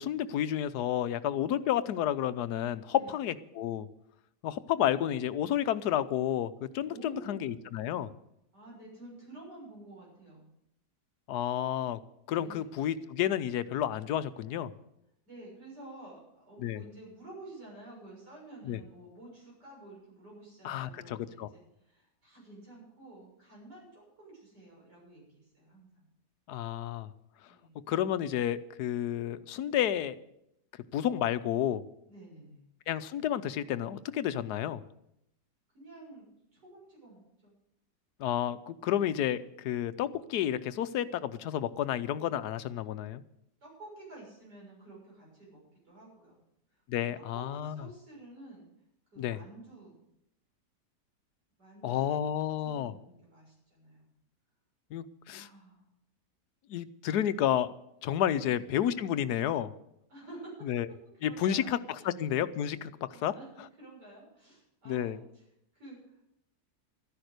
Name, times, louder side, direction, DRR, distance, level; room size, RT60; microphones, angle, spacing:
voice 1, 0.0-3.9 4.4-8.1 11.3-12.0 12.3-14.7 16.6-16.8 18.6-18.8 20.6-21.5 26.5-27.1 27.9-30.2 30.9-31.8 32.9-34.8 38.2-43.2 46.9-47.8 49.2-49.4 51.8-52.9 54.9-55.5 56.7-57.7 58.0-59.7 60.6-60.9 61.2-61.8 62.0-63.3 64.9-65.2, left 11 dB, 75° left, 13 dB, 1.2 m, -31 dB
voice 2, 2.9-3.2 6.9-7.8 8.5-10.5 12.4-12.8 15.3-26.1 27.5-27.8 32.1-32.6 35.7-37.6 43.6-46.4 46.7-46.8 47.1-48.7 49.1-50.0 51.6-52.2 52.6-54.1 55.3-55.9 58.3-58.6 60.1-60.7 61.2-62.1 63.1-65.4 65.7-66.3, right 2 dB, 80° right, -4 dB, 7.6 m, -51 dB
13.0 x 10.5 x 6.6 m, 0.78 s
omnidirectional pair, 1.8 m